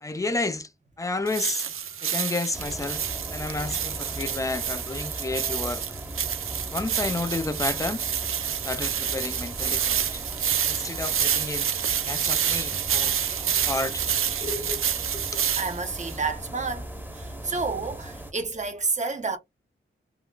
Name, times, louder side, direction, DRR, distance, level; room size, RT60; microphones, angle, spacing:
voice 1, 0.0-0.7 1.0-1.7 2.0-3.1 3.3-5.8 6.7-8.0 8.5-10.2 10.7-11.7 12.0-13.2 13.6-14.0 14.4-14.8 15.1-15.4, left 3 dB, 15° left, 0.5 m, -31 dB
sound 1, 1.3-16.2, right 9 dB, 85° right, 0.4 m, -28 dB
sound 2, 2.5-18.3, right 1 dB, 10° right, 0.9 m, -38 dB
voice 2, 15.6-16.9 17.1-19.4, right 4 dB, 35° right, 0.8 m, -30 dB
3.7 x 2.2 x 2.3 m
wide cardioid pair, 120°, 21 cm